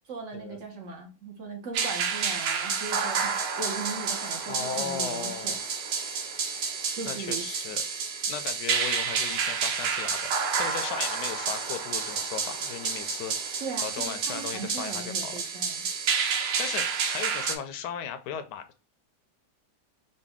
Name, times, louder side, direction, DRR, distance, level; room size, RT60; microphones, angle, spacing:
voice 1, 0.1-5.6 6.9-7.5 13.6-15.9, right 4 dB, 50° right, 2 dB, 1.1 m, -38 dB
sound 1, 1.7-17.6, right 6 dB, 80° right, 1.3 m, -30 dB
voice 2, 4.5-5.6 7.1-7.8 8.3-10.3 10.6-15.3 16.3-18.8, left 8 dB, 80° left, 9 dB, 1.2 m, -37 dB
4.0 x 2.3 x 3.5 m, 0.34 s
omnidirectional pair, 1.8 m